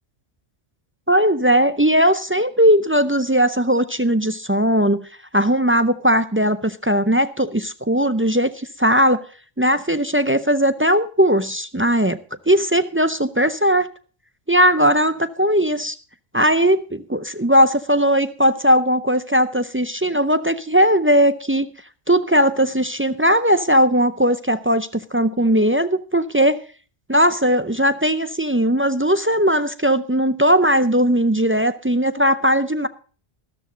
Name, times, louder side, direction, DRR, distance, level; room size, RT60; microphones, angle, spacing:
voice 1, 1.1-5.1 5.3-9.2 9.6-12.2 12.5-13.9 14.5-16.0 16.3-21.7 22.1-26.6 27.1-32.9, equal, 20° right, 11 dB, 0.4 m, -18 dB
13.0 x 13.0 x 3.8 m, 0.39 s
omnidirectional pair, 1.1 m